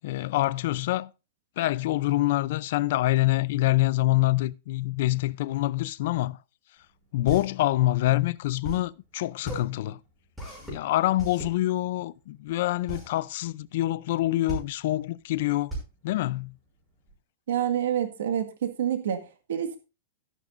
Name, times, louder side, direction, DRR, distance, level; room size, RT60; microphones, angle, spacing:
voice 1, 0.0-1.1 1.6-6.4 7.1-10.0 10.6-15.8 16.0-16.5, left 16 dB, 45° left, 0.5 m, -26 dB
sound 1, 6.8-17.1, right 1 dB, 5° right, 5.7 m, -38 dB
voice 2, 17.5-19.8, right 10 dB, 80° right, 1.7 m, -28 dB
13.0 x 11.0 x 2.5 m
supercardioid pair, 175°, 0 cm